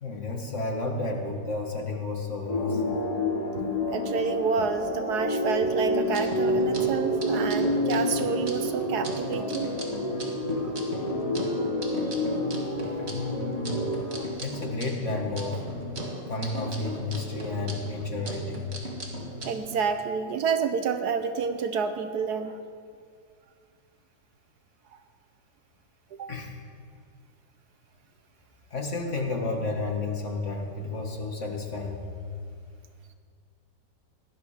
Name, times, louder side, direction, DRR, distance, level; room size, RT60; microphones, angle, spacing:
voice 1, 0.0-3.0 13.0-14.0 14.4-15.6 16.3-18.7 26.3-26.5 28.7-32.0, left 3 dB, 45° left, 1 dB, 1.9 m, -32 dB
sound 1, 2.5-14.3, left 1 dB, 25° left, 1.4 m, -28 dB
voice 2, 3.6-9.7 12.9-13.0 14.2-14.3 19.4-22.6 26.1-26.3, right 5 dB, 70° right, 9 dB, 1.3 m, -29 dB
sound 2, 6.0-19.5, right 1 dB, 40° right, 2.0 m, -38 dB
18.0 x 12.0 x 5.0 m, 2.1 s
omnidirectional pair, 1.9 m